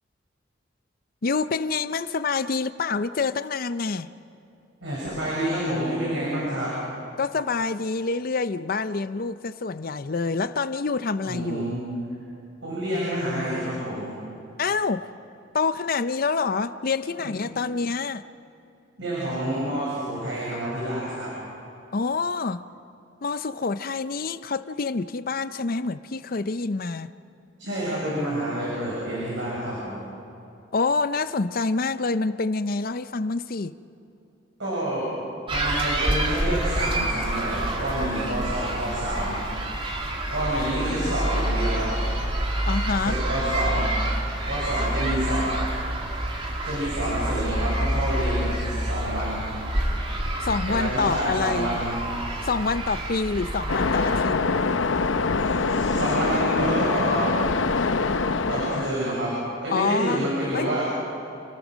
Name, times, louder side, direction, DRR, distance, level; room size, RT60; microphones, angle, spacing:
voice 1, 1.2-4.1 7.2-11.8 14.6-15.1 15.5-18.2 21.9-22.6 23.2-27.1 30.7-33.7 42.6-43.2 50.4-51.8 52.4-54.4 59.7-60.3 60.5-60.7, left 4 dB, 50° left, 13 dB, 0.6 m, -27 dB
voice 2, 4.8-6.7 11.3-11.8 12.6-14.1 19.0-21.3 27.6-30.0 34.6-35.1 35.5-39.4 40.3-42.0 42.9-45.5 46.6-49.5 50.7-52.0 55.7-57.3 58.5-59.3 59.6-60.8, right 1 dB, 75° right, -7 dB, 7.0 m, -28 dB
sound 1, 35.5-54.2, right 1 dB, 30° right, 2.4 m, -28 dB
Waves surf, 53.7-58.9, left 4 dB, 85° left, 0.8 m, -24 dB
29.5 x 18.5 x 6.3 m, 2.6 s
head